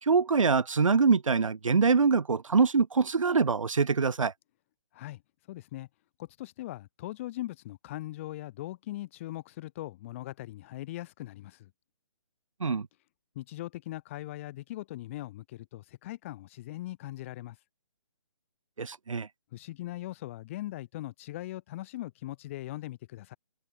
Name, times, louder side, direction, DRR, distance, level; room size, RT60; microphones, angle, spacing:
voice 1, 0.0-4.3 12.6-12.9 18.8-19.3, right 5 dB, 90° right, 1.6 m, -24 dB
voice 2, 5.5-5.9 6.2-11.7 13.4-17.6 19.5-23.4, left 16 dB, 25° left, 2.0 m, -40 dB
hypercardioid pair, 165°, 16 cm